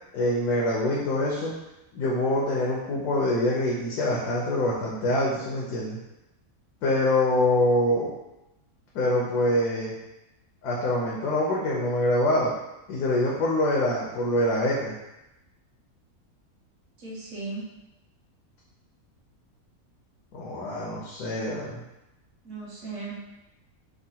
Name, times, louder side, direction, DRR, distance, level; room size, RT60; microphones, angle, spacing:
voice 1, 0.1-1.5 1.9-6.0 6.8-8.1 8.9-9.9 10.6-12.5 12.9-14.9 20.3-21.8, left 1 dB, 85° left, -4 dB, 1.1 m, -25 dB
voice 2, 17.0-17.7 22.4-23.3, right 3 dB, 60° right, -4 dB, 1.0 m, -36 dB
3.6 x 2.0 x 2.7 m, 0.95 s
omnidirectional pair, 1.6 m